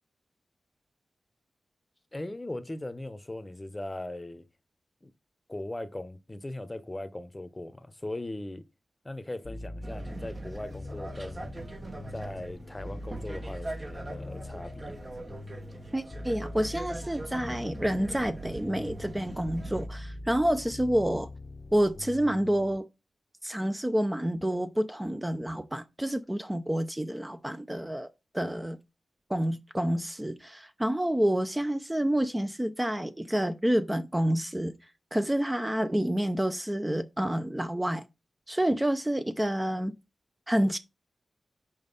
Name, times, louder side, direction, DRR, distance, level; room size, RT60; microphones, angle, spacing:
voice 1, 2.1-4.4 5.0-5.1 5.5-8.6 9.0-11.5 12.1-15.0, left 1 dB, 20° left, 0.9 m, -39 dB
sound 1, 9.4-22.8, left 1 dB, 45° left, 0.8 m, -42 dB
sound 2, 9.8-19.9, right 2 dB, 35° right, 1.1 m, -42 dB
voice 2, 15.9-21.3 21.7-22.8 23.4-28.1 28.3-28.8 29.3-34.7 35.1-38.0 38.5-40.0 40.5-40.8, right 1 dB, 10° right, 0.7 m, -28 dB
5.5 x 5.2 x 4.0 m
cardioid pair, 75°, 0 cm